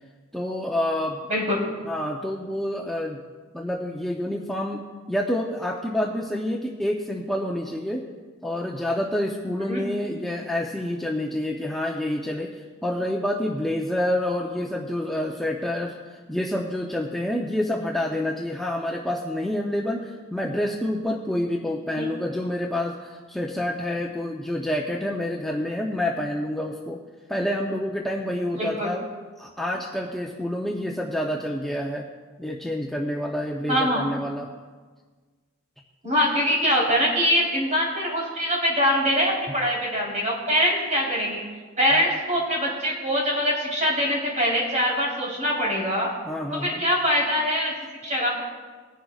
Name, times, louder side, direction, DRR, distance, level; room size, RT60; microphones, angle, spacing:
voice 1, 0.3-1.2 1.9-3.2 3.5-8.1 8.4-27.0 27.3-29.1 29.4-32.1 32.4-34.5 41.9-42.1 46.3-46.8, left 1 dB, ahead, -2 dB, 0.6 m, -28 dB
voice 2, 1.3-1.6 9.7-9.8 21.9-22.1 28.6-28.9 33.7-34.0 36.0-41.4 41.8-46.1 46.5-47.7 48.0-48.4, equal, 40° right, -4 dB, 3.6 m, -23 dB
20.0 x 10.5 x 2.4 m, 1.4 s
head